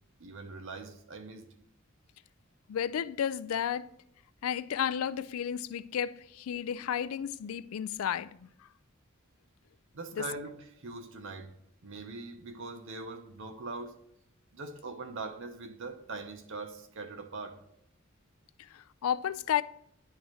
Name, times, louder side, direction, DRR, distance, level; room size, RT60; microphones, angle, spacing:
voice 1, 0.2-1.5 9.9-11.5 11.8-14.0 14.5-17.6, right 3 dB, 65° right, 0.8 m, -42 dB
voice 2, 2.7-3.9 4.4-8.3 10.2-10.3 18.6-19.6, left 8 dB, 80° left, 0.4 m, -32 dB
10.5 x 4.7 x 3.0 m
head